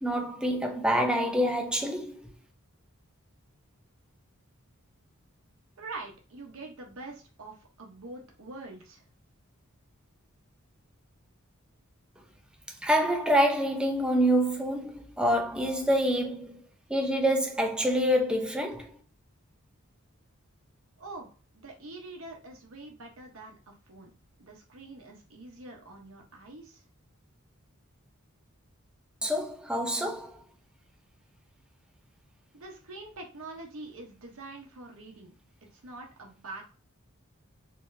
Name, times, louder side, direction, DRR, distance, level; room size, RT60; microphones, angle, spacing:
voice 1, 0.0-2.3 12.8-16.6 16.9-19.0 29.2-30.4, equal, 5° right, 0.5 m, -26 dB
voice 2, 5.8-9.0 21.0-21.3 21.6-24.1 24.4-26.8 32.5-35.3 35.7-36.7, right 2 dB, 70° right, 0.9 m, -45 dB
3.9 x 2.8 x 2.6 m
head